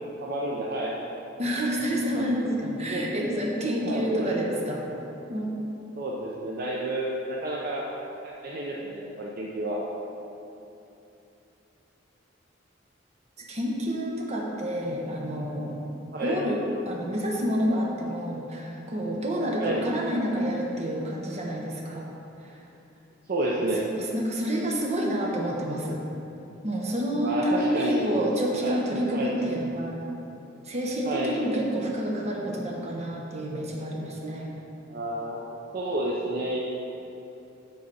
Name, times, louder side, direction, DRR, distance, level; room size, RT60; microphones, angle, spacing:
voice 1, 0.2-1.0 2.9-3.1 3.8-4.6 6.0-7.8 8.2-9.8 16.1-16.4 19.6-19.8 23.3-23.8 27.2-28.1 28.6-28.8 29.1-29.3 31.0-31.3 34.9-35.4 35.7-36.6, right 1 dB, 50° right, -4 dB, 0.6 m, -30 dB
voice 2, 1.4-4.8 5.3-5.5 13.4-15.8 16.2-22.1 22.4-22.6 23.7-26.0 26.6-30.0 30.6-34.5, equal, 35° right, -2 dB, 1.0 m, -28 dB
7.8 x 4.0 x 5.6 m, 2.9 s
head